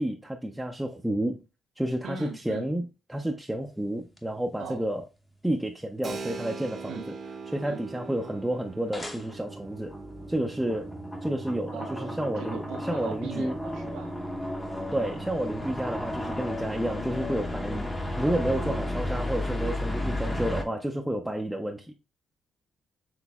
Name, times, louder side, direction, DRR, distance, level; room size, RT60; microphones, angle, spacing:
voice 1, 0.0-1.4 1.8-5.0 5.4-7.0 7.5-9.9 10.3-10.9 11.2-12.6 12.8-13.6 14.9-17.9 18.2-21.9, right 1 dB, 5° right, 0.5 m, -30 dB
voice 2, 2.0-2.7 4.6-4.9 6.9-7.0 7.6-7.8 11.7-14.1 18.6-18.8, right 5 dB, 85° right, 0.9 m, -39 dB
sound 1, 4.2-4.3 8.9-20.6, left 1 dB, 15° left, 0.8 m, -33 dB
Keyboard (musical), 6.0-14.4, right 4 dB, 45° right, 0.8 m, -43 dB
6.0 x 3.2 x 2.3 m
cardioid pair, 90°, 0 cm